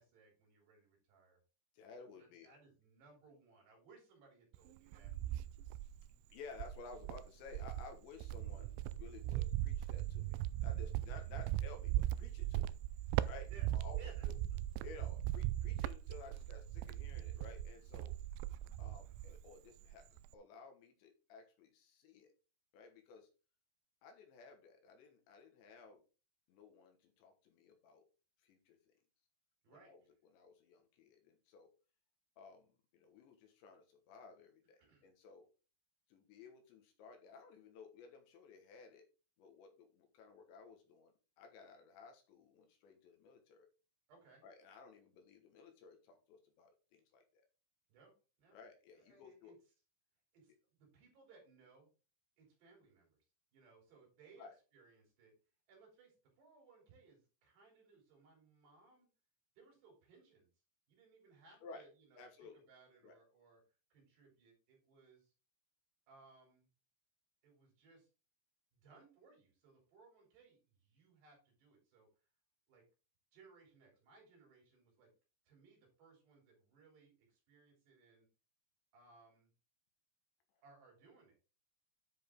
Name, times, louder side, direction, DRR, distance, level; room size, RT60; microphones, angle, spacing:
voice 1, 0.0-1.4 2.2-5.1 13.5-13.7 14.0-14.3 29.6-29.9 34.8-35.1 44.1-44.4 47.9-48.1 48.4-48.6 49.0-49.6 50.3-50.5 50.8-51.9 52.4-53.1 53.5-54.5 54.7-55.3 55.7-59.1 59.6-60.5 60.9-63.6 63.9-65.3 66.1-66.7 67.4-68.1 68.7-72.1 72.7-72.8 73.3-75.1 75.5-78.3 78.9-79.5 80.6-81.4, right 4 dB, 60° right, 1 dB, 5.3 m, -64 dB
voice 2, 1.7-2.5 6.3-12.7 13.2-14.0 14.3-14.4 14.8-18.1 18.8-22.3 22.7-23.3 24.0-26.0 26.5-28.0 28.4-28.8 29.7-31.7 32.4-35.5 36.1-39.1 39.4-43.7 44.4-47.4 48.5-49.5 54.4-54.5 61.6-61.9 62.2-62.6 63.0-63.2, left 4 dB, 70° left, 4 dB, 3.4 m, -56 dB
Cricket, 4.5-6.1 6.5-19.5 19.8-20.3, right 14 dB, 85° right, 2.8 m, -39 dB
10.0 x 5.1 x 3.7 m, 0.33 s
omnidirectional pair, 5.6 m